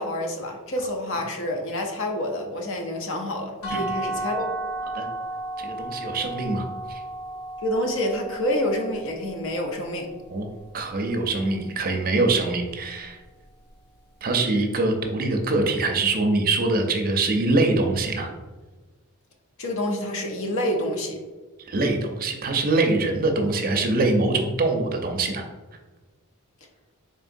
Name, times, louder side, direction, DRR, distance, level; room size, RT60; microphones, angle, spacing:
voice 1, 0.0-4.5 7.6-10.1 19.6-21.2, left 1 dB, 65° left, 2 dB, 0.7 m, -28 dB
sound 1, 3.6-9.4, right 2 dB, 85° left, 1.1 m, -33 dB
voice 2, 5.6-6.6 10.3-10.5 10.7-13.2 14.2-18.3 21.7-25.4, right 2 dB, 40° right, 4 dB, 0.5 m, -23 dB
3.8 x 3.7 x 2.6 m, 1.3 s
head